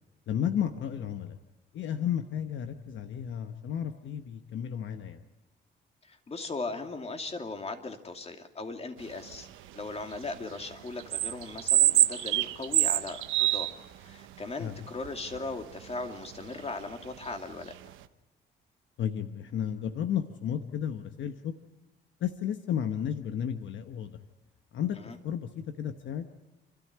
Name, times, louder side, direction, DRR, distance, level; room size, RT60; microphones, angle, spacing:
voice 1, 0.3-1.4 1.7-5.2 14.6-14.7 19.0-21.5 22.2-24.2 24.7-26.3, left 9 dB, 70° left, 8 dB, 1.2 m, -33 dB
voice 2, 6.0-9.5 9.7-17.8 24.9-25.2, left 3 dB, 30° left, 5 dB, 2.7 m, -38 dB
sound 1, 9.3-9.7 10.1-10.7 11.0-13.7 14.0-14.1 15.0-15.6 15.8-15.9 16.3-16.5 17.2-17.3 17.6-17.9, right 14 dB, 90° right, 1.0 m, -26 dB
28.5 x 13.0 x 9.5 m, 1.0 s
cardioid pair, 90°, 20 cm